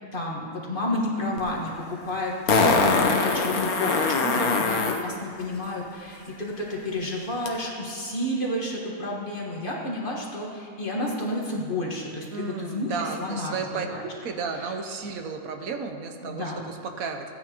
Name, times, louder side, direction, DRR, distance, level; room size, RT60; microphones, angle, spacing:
voice 1, 0.1-14.0 14.5-14.7 16.2-16.7, left 1 dB, 35° left, -3 dB, 1.6 m, -31 dB
Fart, 1.4-1.5 2.5-5.0 7.5-7.6, left 4 dB, 80° left, 1.4 m, -22 dB
voice 2, 4.2-4.6 12.3-17.2, right 5 dB, 75° right, 4 dB, 1.2 m, -33 dB
15.0 x 9.6 x 2.9 m, 2.2 s
omnidirectional pair, 1.5 m